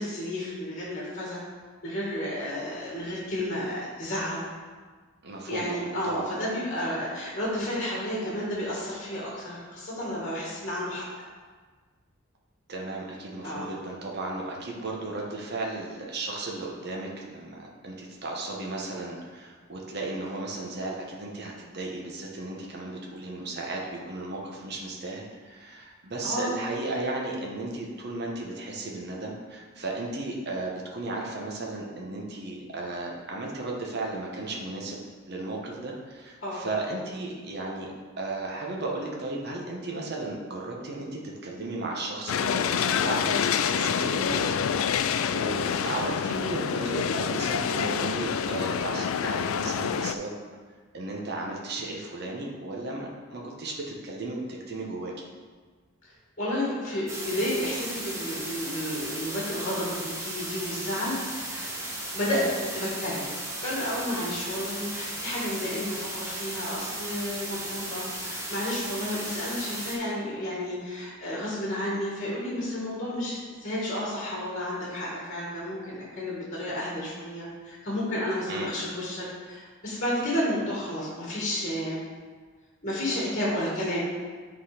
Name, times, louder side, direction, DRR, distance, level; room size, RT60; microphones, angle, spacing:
voice 1, 0.0-1.4 1.8-4.4 5.5-11.0 13.4-13.7 26.2-26.6 36.4-36.7 56.4-61.7 62.1-63.3 63.6-82.0 82.8-84.0, left 1 dB, 40° left, -5 dB, 2.0 m, -31 dB
voice 2, 5.2-6.2 12.7-35.0 35.3-37.9 38.2-45.0 45.3-50.4 50.9-54.4 54.7-55.3 62.3-62.5 78.5-78.7, right 2 dB, 50° right, -1 dB, 1.1 m, -35 dB
sound 1, 42.3-50.2, left 7 dB, 75° left, 0.3 m, -27 dB
sound 2, 57.1-70.0, right 1 dB, 15° right, 1.1 m, -36 dB
8.3 x 4.0 x 5.0 m, 1.5 s
head